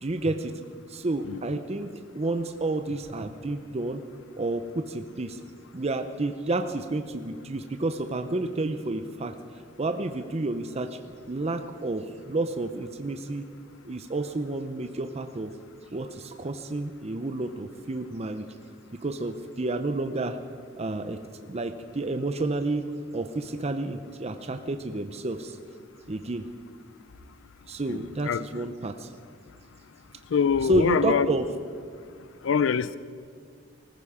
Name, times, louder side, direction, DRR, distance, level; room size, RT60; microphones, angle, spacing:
voice 1, 0.0-0.6 0.9-4.0 4.4-5.4 5.7-11.0 11.3-13.5 13.8-15.5 15.9-18.5 18.9-20.4 20.8-22.8 23.1-25.6 26.1-26.5 27.7-29.1 30.6-31.5, right 2 dB, 35° right, 0.6 m, -30 dB
voice 2, 28.2-28.7 30.3-31.3 32.4-33.0, left 6 dB, 75° left, 0.4 m, -24 dB
19.5 x 15.0 x 4.9 m
head